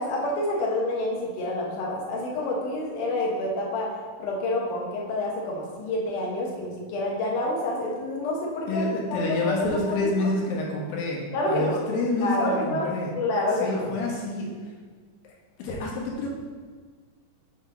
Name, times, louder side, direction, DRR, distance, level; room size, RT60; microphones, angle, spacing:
voice 1, 0.0-3.9 4.2-10.3 11.3-11.8 12.2-12.9 13.1-13.8, left 1 dB, 70° left, -3 dB, 2.8 m, -28 dB
voice 2, 8.7-11.2 11.5-13.1 13.6-14.5 15.2-15.3 15.6-16.3, left 2 dB, 85° left, -2 dB, 3.1 m, -28 dB
8.3 x 3.6 x 5.6 m, 1.5 s
omnidirectional pair, 4.0 m